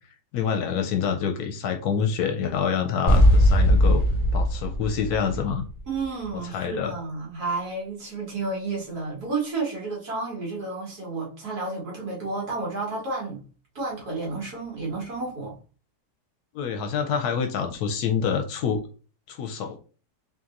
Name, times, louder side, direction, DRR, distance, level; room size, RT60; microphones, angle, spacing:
voice 1, 0.3-4.0 4.3-5.6 6.3-6.9 16.5-18.8 19.3-19.8, left 7 dB, 85° left, 1.1 m, -27 dB
sound 1, 3.1-6.0, equal, 20° left, 1.3 m, -19 dB
voice 2, 5.9-13.4 13.8-15.6, right 3 dB, 75° right, 2.1 m, -31 dB
3.8 x 2.9 x 3.7 m
omnidirectional pair, 1.6 m